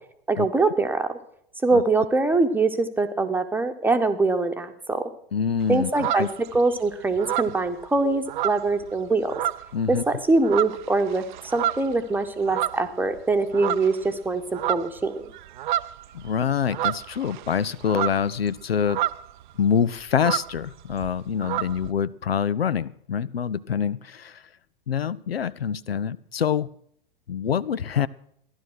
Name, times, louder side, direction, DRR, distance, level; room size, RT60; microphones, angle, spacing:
voice 1, 0.3-1.1 1.6-5.0 5.7-9.4 9.9-11.2 11.5-15.3, right 3 dB, 5° right, 7 dB, 1.2 m, -23 dB
voice 2, 5.3-6.3 9.7-10.0 16.1-19.0 19.6-24.4 24.9-26.7 27.3-28.1, left 7 dB, 80° left, 20 dB, 0.5 m, -25 dB
sound 1, 5.6-6.7 7.1-9.0 9.3-9.8 10.2-13.2 13.5-14.1 14.3-19.4 19.7-19.8 20.0-21.9, right 13 dB, 55° right, 0.5 m, -30 dB
15.5 x 11.5 x 6.2 m, 0.67 s
figure-of-eight pair, 90°, 30 cm